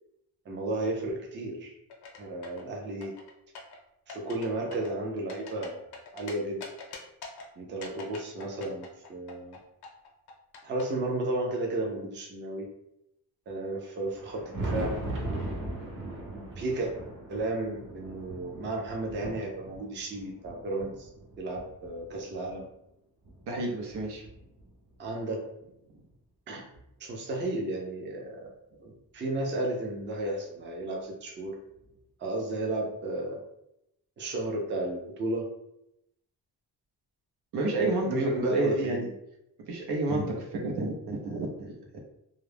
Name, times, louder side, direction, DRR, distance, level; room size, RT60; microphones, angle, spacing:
voice 1, 0.5-1.7 2.2-3.1 4.1-6.6 7.6-9.6 10.6-12.7 13.5-14.9 16.3-16.9 17.3-21.1 21.4-22.7 25.0-25.5 26.5-26.6 27.0-28.5 28.8-31.6 32.2-33.4 34.2-35.5 37.8-39.1, right 2 dB, 30° right, 0 dB, 0.4 m, -33 dB
sound 1, 1.9-2.7 3.0-3.8 4.1-4.5 4.7-6.3 6.6-7.5 7.8-10.8, left 5 dB, 75° left, 0.7 m, -43 dB
Thunder, 14.0-22.6 23.2-24.9 26.1-26.2 26.7-26.8 28.7-28.8 30.2-30.3 31.8-31.9, right 1 dB, 55° right, 0.8 m, -39 dB
voice 2, 23.5-24.2 37.5-39.1 39.7-42.0, right 2 dB, 85° right, 0 dB, 0.7 m, -30 dB
2.3 x 2.0 x 3.2 m, 0.80 s
wide cardioid pair, 165°, 39 cm